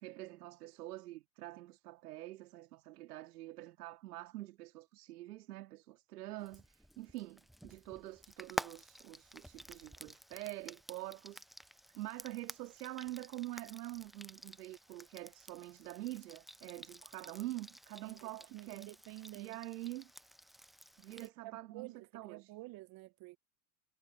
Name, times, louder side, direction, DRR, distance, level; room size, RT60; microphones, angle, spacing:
voice 1, 0.0-11.5 11.9-18.9 19.3-20.1 21.0-22.5, right 17 dB, 75° right, 2.6 m, -46 dB
Frying (food), 6.4-21.3, equal, ahead, 0.3 m, -50 dB
voice 2, 18.0-19.6 21.1-23.4, right 20 dB, 45° right, 1.1 m, -50 dB
hypercardioid pair, 85°, 46 cm